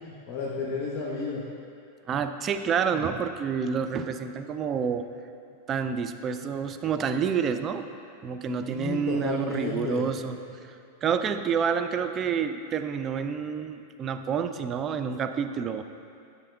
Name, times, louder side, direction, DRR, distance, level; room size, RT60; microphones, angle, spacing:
voice 1, 0.0-1.4 8.5-10.0, left 4 dB, 40° left, -4 dB, 1.0 m, -32 dB
voice 2, 2.1-5.1 5.7-7.9 8.2-10.8 11.0-15.8, right 7 dB, 30° right, 8 dB, 0.4 m, -28 dB
10.0 x 7.1 x 2.3 m, 2.5 s
figure-of-eight pair, 95°, 0 cm